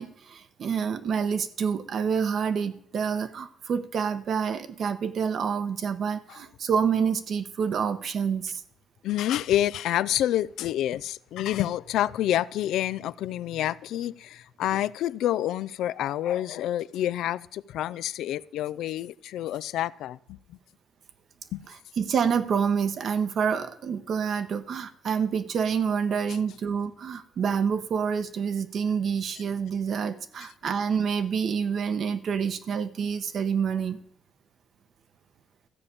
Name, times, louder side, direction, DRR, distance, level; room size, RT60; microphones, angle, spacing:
voice 1, 0.0-8.6 22.0-34.0, right 6 dB, 60° right, 1.0 m, -27 dB
voice 2, 9.0-20.6 21.5-21.7, left 12 dB, 85° left, 0.4 m, -28 dB
13.5 x 5.2 x 8.4 m
cardioid pair, 90°, 0 cm